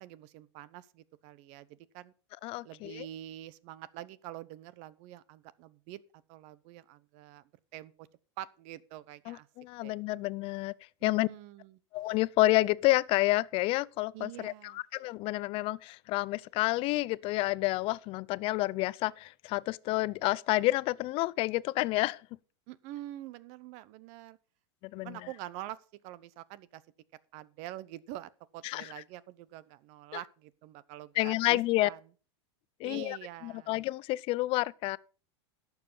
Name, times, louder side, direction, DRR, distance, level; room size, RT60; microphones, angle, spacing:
voice 1, 0.0-2.1 2.6-6.0 6.3-7.4 7.7-8.1 8.4-9.5 9.8-9.9 11.0-11.8 14.1-14.8 22.7-24.4 25.0-25.8 26.0-26.8 27.3-32.0 32.8-33.8, right 14 dB, 50° right, 0.8 m, -46 dB
voice 2, 2.4-3.1 9.3-10.7 11.0-11.3 11.9-22.2 24.8-25.2 28.6-28.9 31.2-31.9 32.8-35.0, left 19 dB, 40° left, 0.4 m, -29 dB
11.5 x 7.2 x 5.6 m
supercardioid pair, 130°, 14 cm